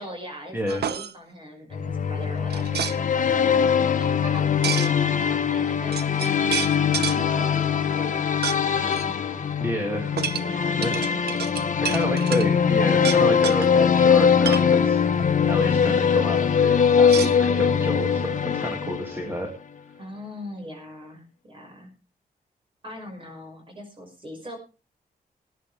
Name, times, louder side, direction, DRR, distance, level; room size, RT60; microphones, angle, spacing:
voice 1, 0.0-3.0 3.4-4.9 5.2-6.0 7.0-9.1 10.4-11.2 20.0-21.9 22.8-24.6, equal, 30° right, 3 dB, 5.5 m, -40 dB
voice 2, 0.5-0.8 3.2-3.6 9.6-10.3 10.7-11.0 11.8-19.5, equal, 15° right, 1 dB, 2.3 m, -30 dB
sound 1, 0.7-1.1 2.5-3.0 4.6-4.9 5.6-5.7 5.9-7.2 8.4-8.6 8.9-9.0 10.2-12.5 13.0-13.7 14.2-14.7 17.0-17.9, right 8 dB, 90° right, 0.9 m, -30 dB
sound 2, 1.7-19.4, left 7 dB, 50° left, 1.1 m, -22 dB
20.5 x 10.0 x 3.4 m, 0.32 s
wide cardioid pair, 150°, 16 cm